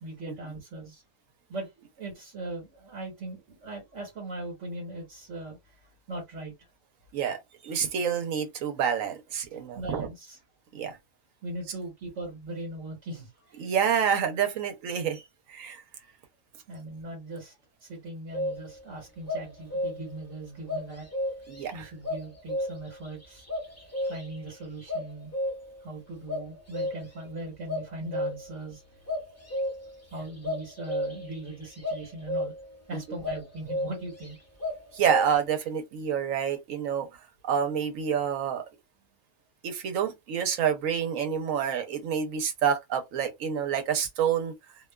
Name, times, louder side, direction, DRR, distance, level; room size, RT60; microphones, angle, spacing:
voice 1, 0.0-1.0 1.5-1.7 2.0-5.8 6.1-6.5 9.5-10.4 11.4-13.7 16.7-17.5 17.8-21.1 21.7-23.4 24.1-25.3 25.8-28.8 30.1-32.5 32.9-34.4, right 2 dB, 70° right, 1.4 m, -39 dB
voice 2, 7.6-10.1 10.7-11.0 13.6-15.2 15.5-15.8 21.5-21.9 34.9-37.1 37.4-38.6 39.6-44.5, right 8 dB, 85° right, 1.1 m, -28 dB
sound 1, 18.3-18.8 19.3-20.2 20.7-21.6 22.0-23.0 23.5-24.5 24.9-25.8 26.3-27.3 27.7-28.6 29.1-30.0 30.4-31.3 31.8-32.8 33.2-34.3 34.6-35.4, left 1 dB, 15° left, 0.6 m, -32 dB
2.6 x 2.3 x 2.2 m
omnidirectional pair, 1.3 m